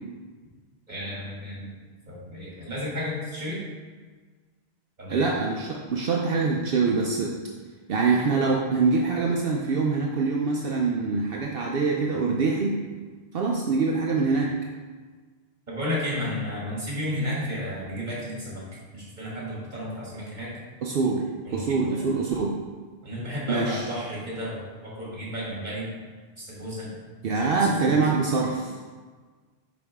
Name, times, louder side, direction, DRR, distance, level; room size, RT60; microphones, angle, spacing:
voice 1, 0.9-1.7 2.1-3.6 5.0-5.3 15.7-18.6 18.9-20.6 21.5-22.1 23.0-25.9 26.4-26.9 27.3-28.0, left 1 dB, 45° right, -6 dB, 2.2 m, -33 dB
voice 2, 5.1-7.3 7.9-12.8 13.3-14.5 20.8-21.2 21.5-22.6 23.5-23.8 27.2-28.7, right 4 dB, 65° right, -1 dB, 0.8 m, -24 dB
6.9 x 5.2 x 3.5 m, 1.5 s
omnidirectional pair, 1.1 m